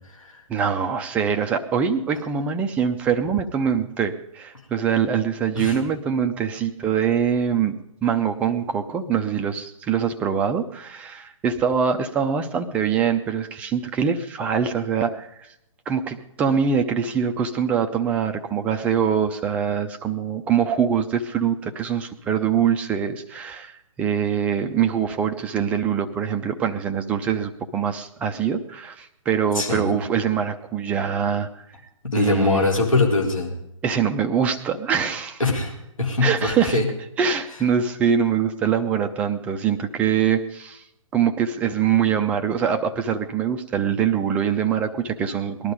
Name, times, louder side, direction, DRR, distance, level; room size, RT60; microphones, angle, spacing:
voice 1, 0.5-7.7 8.0-15.3 15.9-31.5 32.2-32.7 33.8-35.4 36.2-36.8 37.2-40.8 41.1-45.7, right 7 dB, 10° right, 6 dB, 0.5 m, -23 dB
voice 2, 29.5-29.9 32.0-33.5 35.4-36.9, left 3 dB, 75° left, 0 dB, 4.0 m, -22 dB
19.5 x 11.5 x 5.1 m, 0.81 s
figure-of-eight pair, 135°, 17 cm